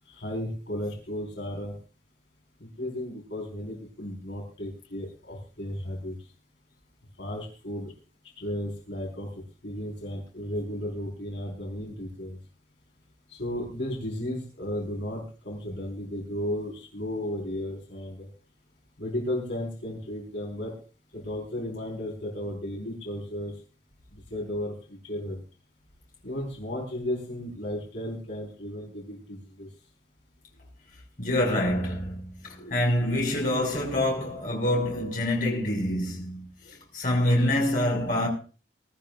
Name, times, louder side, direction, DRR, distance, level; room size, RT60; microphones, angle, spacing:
voice 1, 0.1-1.7 2.6-6.1 7.2-7.9 8.4-9.3 9.6-12.4 13.3-18.3 19.0-20.7 21.1-23.5 24.1-25.4 26.2-29.7, left 1 dB, 70° left, 4.7 m, -34 dB
voice 2, 31.2-38.3, left 1 dB, 45° left, 5.7 m, -26 dB
23.5 x 13.0 x 2.5 m
head